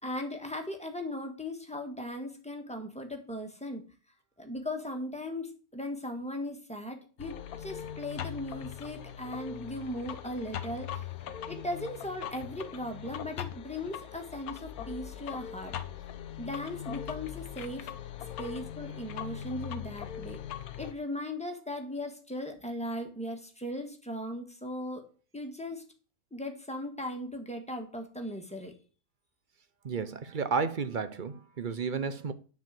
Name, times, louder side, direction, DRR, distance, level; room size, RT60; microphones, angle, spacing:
voice 1, 0.0-3.8 4.4-11.1 11.5-15.7 16.4-17.9 18.4-20.4 20.8-25.8 26.3-28.7, left 1 dB, 5° left, 1.5 m, -38 dB
sound 1, 7.2-20.9, left 9 dB, 85° left, 1.3 m, -40 dB
voice 2, 29.8-32.3, right 5 dB, 45° right, 0.7 m, -32 dB
9.4 x 4.6 x 7.5 m
omnidirectional pair, 1.5 m